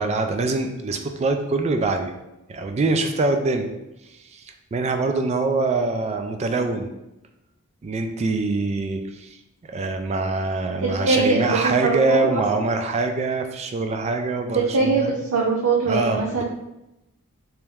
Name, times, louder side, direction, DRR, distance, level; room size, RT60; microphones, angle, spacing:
voice 1, 0.0-2.1 2.5-3.7 4.1-6.9 7.8-9.4 9.7-15.1 15.9-16.4, right 3 dB, 30° right, 6 dB, 0.3 m, -24 dB
voice 2, 10.8-12.6 14.5-16.4, right 3 dB, 75° right, -3 dB, 0.6 m, -22 dB
3.3 x 3.0 x 3.4 m, 0.92 s
head